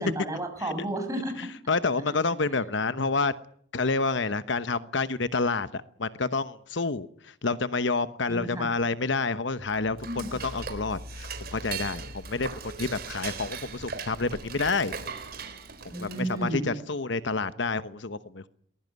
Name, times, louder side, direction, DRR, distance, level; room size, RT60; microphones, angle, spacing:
voice 1, 0.0-1.5 8.3-8.7 10.0-10.3 15.9-16.7, right 1 dB, 15° right, 5 dB, 7.2 m, -32 dB
voice 2, 1.4-3.3 3.7-10.0 10.4-14.9 15.8-18.5, left 3 dB, 60° left, 13 dB, 1.1 m, -29 dB
Dishes pots and pans / Cutlery silverware, 9.6-16.5, right 4 dB, 50° right, 4.2 m, -39 dB
23.5 x 20.5 x 9.4 m, 0.64 s
head